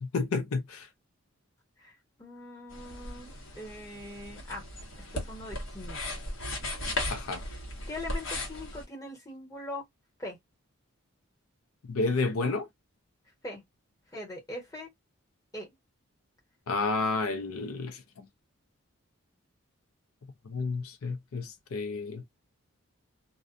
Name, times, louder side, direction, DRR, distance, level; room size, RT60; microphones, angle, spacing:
voice 1, 0.0-0.9 7.1-7.4 11.9-12.7 16.7-18.2 20.5-22.2, left 3 dB, 85° left, 0.5 m, -31 dB
voice 2, 1.8-4.6 5.1-6.0 7.9-9.8 10.2-10.4 13.4-13.6 14.1-14.9 15.5-15.7, left 1 dB, 15° left, 1.2 m, -41 dB
sound 1, 2.7-8.8, left 1 dB, 65° left, 1.1 m, -37 dB
2.4 x 2.2 x 2.5 m
head